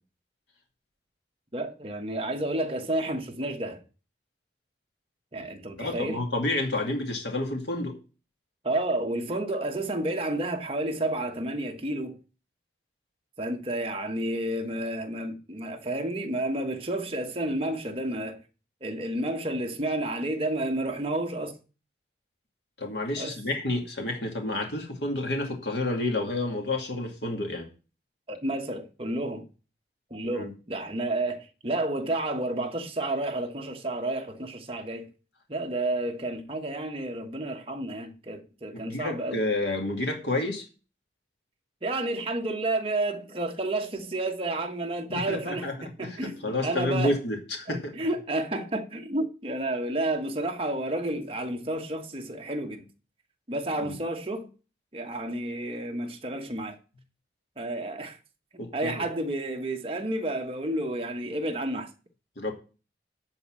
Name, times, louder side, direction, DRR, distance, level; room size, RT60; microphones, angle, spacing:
voice 1, 1.5-3.8 5.3-6.2 8.6-12.2 13.4-18.4 18.8-21.6 23.2-23.4 28.3-29.5 30.1-35.1 35.5-39.4 41.8-47.1 47.7-52.9 53.5-54.5 54.9-56.8 57.6-58.2 58.7-61.9, right 1 dB, 30° right, 1.1 m, -31 dB
voice 2, 5.8-8.0 22.8-27.7 30.2-30.5 38.7-40.6 45.1-48.0 53.8-54.0 58.6-59.1 62.4-62.5, left 2 dB, 80° left, 2.3 m, -30 dB
11.0 x 4.2 x 7.4 m
head